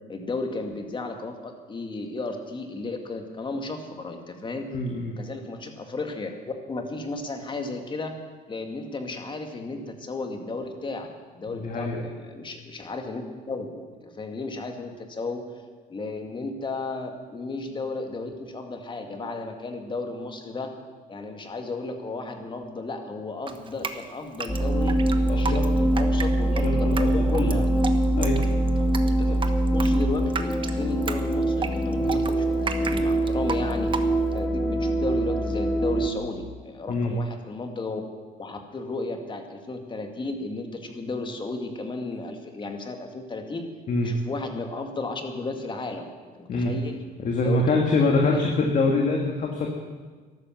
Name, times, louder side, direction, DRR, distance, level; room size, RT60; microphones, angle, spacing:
voice 1, 0.1-4.7 5.2-8.1 8.5-15.4 15.9-20.7 21.1-25.0 25.3-27.7 28.1-28.5 29.0-29.4 29.7-34.1 34.3-38.0 38.4-43.7 44.0-46.1 46.3-47.0 47.4-49.0, left 3 dB, 30° left, 5 dB, 2.0 m, -34 dB
voice 2, 4.7-5.1 11.5-12.0 25.3-25.6 26.6-27.1 27.4-27.5 28.2-28.4 32.0-32.1 36.9-37.1 43.9-44.1 46.5-46.7 47.2-49.8, left 3 dB, 50° left, 1 dB, 1.9 m, -24 dB
Drip, 23.5-34.4, right 4 dB, 30° right, 1.1 m, -34 dB
sound 1, 24.5-36.1, right 1 dB, 10° left, 2.0 m, -23 dB
13.5 x 12.0 x 7.5 m, 1.4 s
cardioid pair, 110°, 17 cm